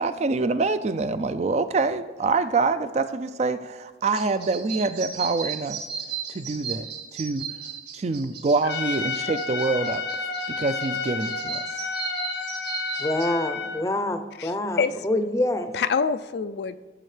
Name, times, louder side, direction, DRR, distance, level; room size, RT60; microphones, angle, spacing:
voice 1, 0.0-5.8 6.3-7.4 7.9-10.0 10.5-11.8, right 3 dB, 35° right, 11 dB, 0.4 m, -26 dB
sound 1, 4.1-13.3, right 7 dB, 65° right, 1.8 m, -36 dB
Trumpet, 8.6-13.9, left 4 dB, 85° left, 1.0 m, -31 dB
voice 2, 13.0-15.7, left 1 dB, 15° left, 8 dB, 0.6 m, -26 dB
voice 3, 14.4-15.1 15.7-16.8, left 5 dB, 65° left, 13 dB, 0.4 m, -26 dB
16.5 x 7.2 x 3.3 m, 1.3 s
head